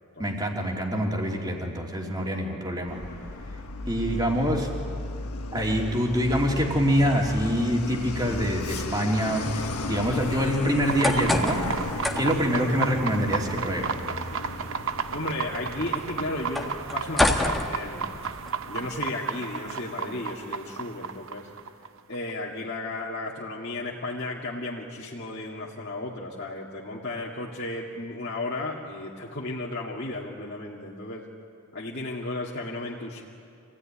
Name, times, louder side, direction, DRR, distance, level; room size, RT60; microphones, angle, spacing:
voice 1, 0.2-3.0 3.9-4.7 5.5-11.6 12.1-13.9, equal, 20° right, 0 dB, 3.0 m, -25 dB
Truck, 2.9-19.1, left 2 dB, 85° left, 1.5 m, -35 dB
sound 1, 10.7-18.5, left 1 dB, ahead, 1.4 m, -31 dB
sound 2, 10.8-22.3, right 6 dB, 60° right, 0.8 m, -33 dB
voice 2, 15.1-18.1 18.7-21.5 22.1-31.2 31.7-33.2, left 2 dB, 50° left, -4 dB, 2.1 m, -34 dB
26.5 x 16.5 x 9.9 m, 2.5 s
head